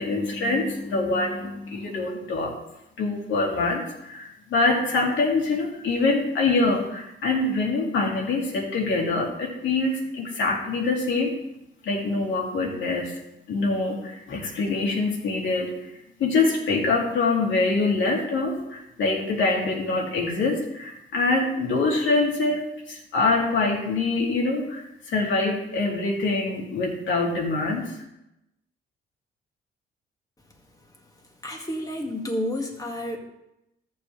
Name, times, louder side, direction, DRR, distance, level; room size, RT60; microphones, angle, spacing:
voice 1, 0.0-2.5 3.0-11.3 11.8-13.1 13.5-15.7 16.2-27.9, left 3 dB, 75° left, -2 dB, 2.7 m, -25 dB
voice 2, 31.4-33.2, left 1 dB, 15° left, 1 dB, 2.0 m, -30 dB
13.5 x 7.1 x 3.3 m, 0.88 s
cardioid pair, 90°, 20 cm